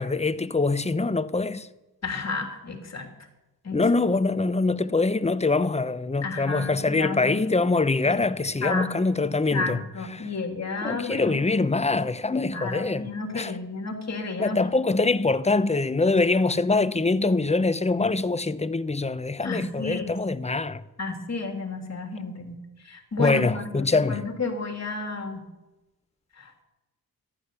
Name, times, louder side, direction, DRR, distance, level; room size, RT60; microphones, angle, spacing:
voice 1, 0.0-1.7 3.7-9.8 10.1-10.3 10.8-13.5 14.4-20.8 23.2-24.2, left 3 dB, 15° left, 0.8 m, -24 dB
voice 2, 2.0-3.1 3.6-3.8 6.2-7.4 8.0-8.2 8.6-8.9 9.5-11.3 12.4-14.6 19.4-20.2 21.0-22.5 22.8-25.4 26.4-26.6, left 3 dB, 45° left, 3.2 m, -32 dB
14.5 x 12.0 x 7.0 m
cardioid pair, 85°, 37 cm